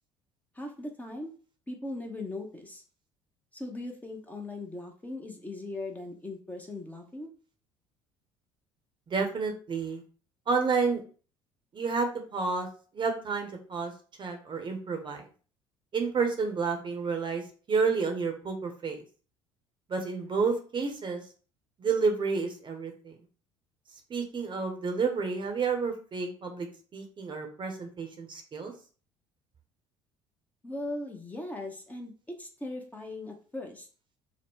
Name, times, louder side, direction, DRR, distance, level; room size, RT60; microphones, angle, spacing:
voice 1, 0.5-1.3 1.7-2.8 3.5-7.3 30.6-32.1 32.4-33.9, left 2 dB, 10° left, 2 dB, 0.7 m, -39 dB
voice 2, 9.1-10.0 10.5-11.0 11.7-12.7 12.9-13.9 14.2-15.2 15.9-17.4 17.7-19.0 19.9-21.2 21.8-23.1 24.1-26.7 26.9-28.7, right 4 dB, 35° right, 4 dB, 0.8 m, -30 dB
2.9 x 2.0 x 3.6 m, 0.39 s
hypercardioid pair, 60°, 14 cm